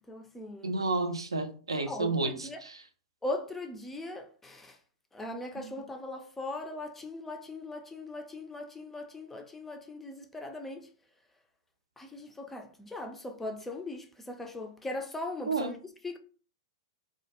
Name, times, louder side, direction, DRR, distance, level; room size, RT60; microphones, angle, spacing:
voice 1, 0.1-0.8 1.9-2.6 3.2-4.7 5.1-10.9 12.0-15.8 16.0-16.2, left 2 dB, 10° left, 0.3 m, -39 dB
voice 2, 0.6-2.8 5.6-5.7 15.5-15.7, right 3 dB, 85° right, 0.4 m, -31 dB
2.1 x 2.1 x 2.7 m
figure-of-eight pair, 105°, 3 cm